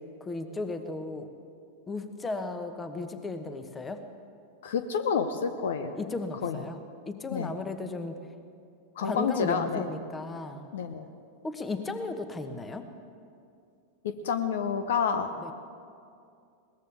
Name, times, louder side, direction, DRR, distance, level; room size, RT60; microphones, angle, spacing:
voice 1, 0.2-1.3 1.9-4.0 6.0-6.8 7.1-8.2 9.0-10.7 11.4-12.9 15.4-15.5, left 3 dB, 15° left, 8 dB, 1.2 m, -35 dB
voice 2, 4.6-5.9 6.4-6.6 7.3-7.5 9.0-9.9 10.7-11.0 14.0-15.5, left 6 dB, 60° left, 10 dB, 0.8 m, -29 dB
21.5 x 19.5 x 3.5 m, 2.4 s
figure-of-eight pair, 90°, 0 cm